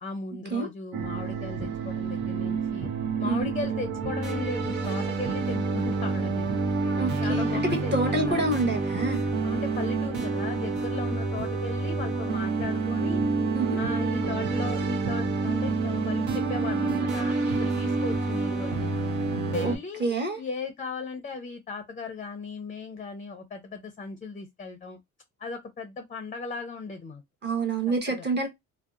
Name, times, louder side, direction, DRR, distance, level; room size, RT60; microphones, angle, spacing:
voice 1, 0.0-2.9 3.2-6.5 7.2-8.5 9.4-13.2 13.7-19.1 19.4-20.1 20.4-25.0 25.4-27.2 28.1-28.3, left 4 dB, 25° left, 0.5 m, -37 dB
sound 1, 0.9-19.8, right 3 dB, 75° right, 0.8 m, -28 dB
voice 2, 7.0-9.3 13.5-13.8 19.6-19.7 20.0-20.4 27.4-28.5, right 2 dB, 35° right, 1.0 m, -27 dB
2.7 x 2.0 x 2.3 m
cardioid pair, 90°, 30 cm